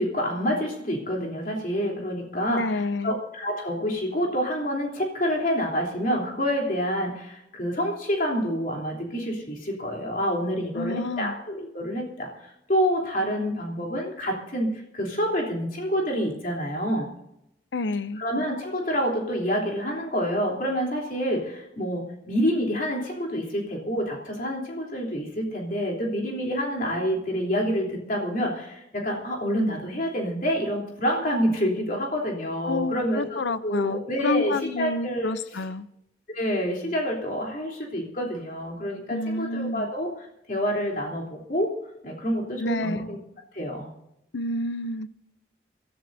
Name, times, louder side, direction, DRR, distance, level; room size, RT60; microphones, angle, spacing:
voice 1, 0.0-17.1 18.2-35.6 36.3-41.8 42.0-43.2 43.5-43.9, equal, 45° left, -1 dB, 3.4 m, -28 dB
voice 2, 2.5-3.2 10.7-11.4 17.7-18.2 32.6-35.9 39.1-39.9 42.6-43.1 44.3-45.1, left 2 dB, 85° left, 14 dB, 0.6 m, -29 dB
27.0 x 13.5 x 2.7 m, 0.82 s
head